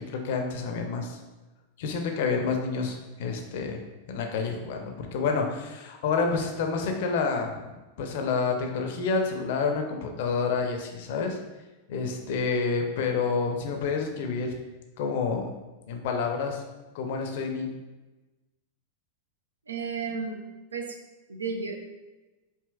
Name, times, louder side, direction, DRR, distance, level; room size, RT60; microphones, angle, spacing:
voice 1, 0.1-1.2 1.8-3.8 4.1-11.4 11.9-14.6 15.0-15.5 15.9-16.6 16.9-17.7, left 4 dB, 50° left, 3 dB, 0.5 m, -29 dB
voice 2, 19.7-20.4 20.7-21.0 21.3-21.8, right 5 dB, 75° right, 4 dB, 0.4 m, -32 dB
5.0 x 2.8 x 2.2 m, 1.1 s
figure-of-eight pair, 90°, 0 cm